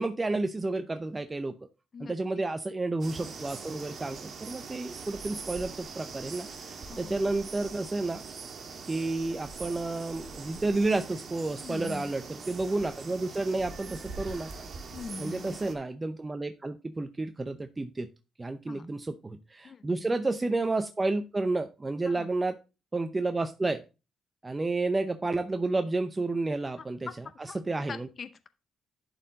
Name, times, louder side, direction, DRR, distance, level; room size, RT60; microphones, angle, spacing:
voice 1, 0.0-1.6 2.0-8.2 8.9-14.5 15.2-18.1 18.4-22.6 22.9-23.8 24.4-27.1 27.7-28.1, right 2 dB, 20° right, 8 dB, 0.6 m, -31 dB
voice 2, 1.9-2.5 6.9-7.2 11.6-12.1 14.9-15.6 18.7-18.9 19.6-19.9 22.1-22.3 26.8-26.9 27.4-27.6 27.9-28.5, left 5 dB, 45° left, 12 dB, 0.6 m, -42 dB
sound 1, 3.0-15.7, right 4 dB, 50° right, 1.6 m, -42 dB
11.0 x 4.4 x 4.0 m, 0.30 s
cardioid pair, 105°, 0 cm